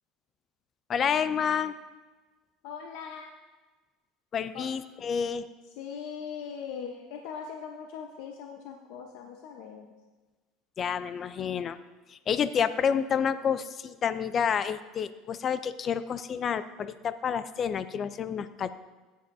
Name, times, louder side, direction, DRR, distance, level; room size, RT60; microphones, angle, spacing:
voice 1, 0.9-1.7 4.3-5.5 10.8-11.8 12.1-18.7, left 7 dB, 35° left, 13 dB, 0.5 m, -29 dB
voice 2, 2.6-3.3 4.5-4.7 5.8-9.9, left 7 dB, 70° left, 2 dB, 1.0 m, -40 dB
16.0 x 10.0 x 2.7 m, 1.3 s
supercardioid pair, 125°, 0 cm